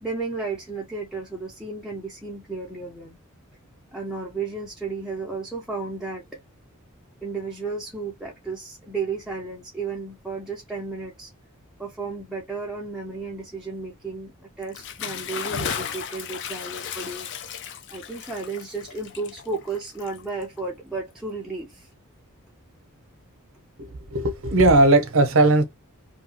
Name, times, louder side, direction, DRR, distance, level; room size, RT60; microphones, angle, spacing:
voice 1, 0.0-3.2 3.9-6.4 7.2-11.3 11.8-17.3 17.6-21.9, right 4 dB, ahead, 0.5 m, -33 dB
Bathtub (filling or washing) / Splash splatter, 14.6-20.6, left 7 dB, 55° left, 0.4 m, -35 dB
voice 2, 24.1-25.6, right 2 dB, 65° right, 0.6 m, -17 dB
2.7 x 2.3 x 2.7 m
head